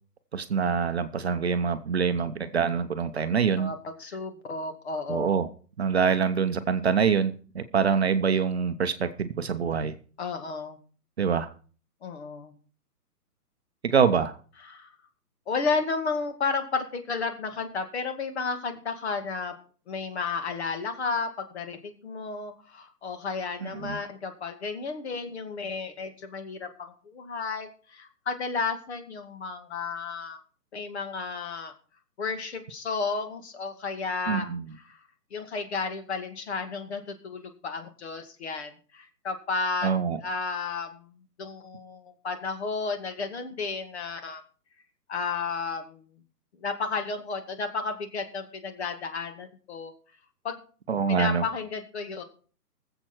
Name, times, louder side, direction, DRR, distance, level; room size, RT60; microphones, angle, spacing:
voice 1, 0.3-3.7 5.1-5.5 5.8-10.0 11.2-11.5 13.8-14.4 23.6-24.0 34.3-34.7 39.8-40.2 50.9-51.4, right 6 dB, 40° right, 10 dB, 0.8 m, -25 dB
voice 2, 3.5-5.3 10.2-10.8 12.0-12.5 14.7-14.9 15.5-19.5 19.9-30.4 30.7-31.7 32.2-34.5 34.8-35.0 35.3-39.9 40.2-44.4 45.1-46.1 46.6-49.9 50.4-50.6 51.1-52.2, left 4 dB, 40° left, 7 dB, 2.2 m, -32 dB
19.0 x 7.8 x 4.5 m, 0.41 s
hypercardioid pair, 160°, 48 cm